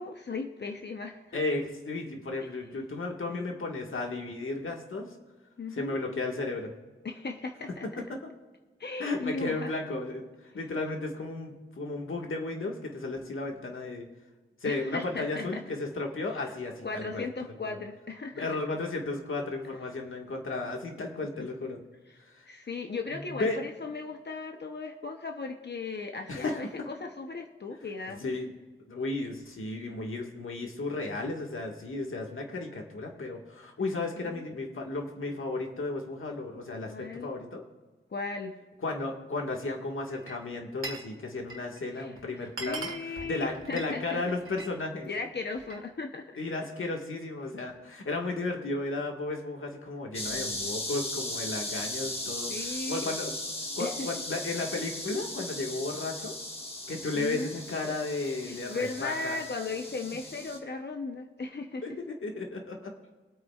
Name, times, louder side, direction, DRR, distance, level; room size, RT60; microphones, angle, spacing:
voice 1, 0.0-1.4 2.4-2.9 3.3-3.5 5.6-6.0 7.0-7.9 8.8-9.7 14.6-15.6 16.3-16.5 16.8-18.5 21.4-21.5 22.5-28.2 34.2-34.4 36.9-37.3 38.1-38.6 42.0-44.2 45.1-46.4 50.3-50.5 52.5-53.1 53.8-54.2 57.1-57.6 58.4-61.8, left 3 dB, 55° left, 4 dB, 0.8 m, -37 dB
voice 2, 1.3-5.1 5.7-6.7 8.1-8.2 9.0-10.2 10.5-14.0 14.6-17.3 18.3-21.8 22.3-22.5 23.1-23.6 26.3-26.9 28.1-28.5 28.9-37.6 38.8-45.1 46.4-53.3 53.7-56.4 56.9-59.4 61.8-62.9, left 2 dB, 75° left, 1 dB, 1.7 m, -34 dB
Glass, 40.1-41.1 41.4-41.8 42.2-42.3 42.5-44.7 45.1-45.9, right 3 dB, 80° right, 1.6 m, -41 dB
sound 1, 50.1-60.6, left 1 dB, 30° left, 1.7 m, -37 dB
23.5 x 8.7 x 2.4 m, 1.2 s
wide cardioid pair, 110°, 21 cm